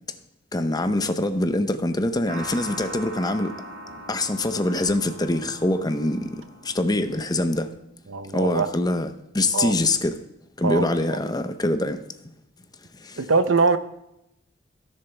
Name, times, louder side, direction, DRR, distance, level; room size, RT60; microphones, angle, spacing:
voice 1, 0.5-3.5 4.1-7.7 8.3-10.2 10.6-12.0 13.0-13.2, left 1 dB, 20° left, 0.7 m, -24 dB
sound 1, 2.3-7.5, right 1 dB, 55° right, 1.9 m, -40 dB
voice 2, 8.1-8.7 9.5-9.7 10.6-11.2 13.2-13.8, right 4 dB, 85° right, 0.8 m, -22 dB
16.5 x 7.1 x 3.4 m
head